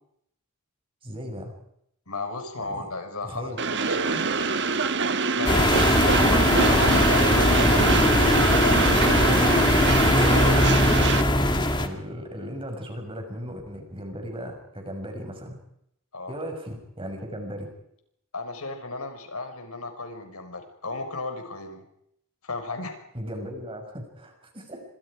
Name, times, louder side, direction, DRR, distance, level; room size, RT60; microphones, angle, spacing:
voice 1, 1.0-1.6 2.6-2.8 3.2-3.6 6.1-6.4 9.9-10.1 10.8-15.6 16.3-17.7 23.1-24.8, equal, 25° right, 4 dB, 6.3 m, -37 dB
voice 2, 2.1-4.3 5.4-6.4 6.7-9.6 16.1-16.3 18.3-21.8 22.4-23.0, left 3 dB, 85° left, 6 dB, 5.3 m, -34 dB
Train, 3.6-11.2, right 5 dB, 55° right, 1.3 m, -24 dB
sound 1, 5.4-11.9, left 1 dB, 20° left, 2.2 m, -20 dB
28.0 x 26.0 x 5.0 m, 0.74 s
head